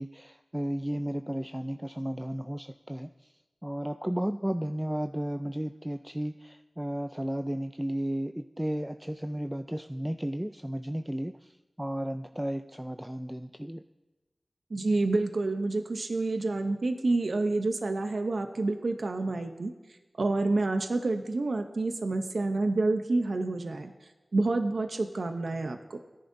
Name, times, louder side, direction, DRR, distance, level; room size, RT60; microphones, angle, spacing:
voice 1, 0.0-3.3 3.6-13.8, right 1 dB, 10° right, 8 dB, 0.4 m, -34 dB
voice 2, 14.7-19.7 20.2-23.9 24.3-26.0, right 2 dB, 85° right, 6 dB, 0.7 m, -28 dB
17.5 x 10.5 x 2.6 m, 1.1 s
wide cardioid pair, 50°, 0 cm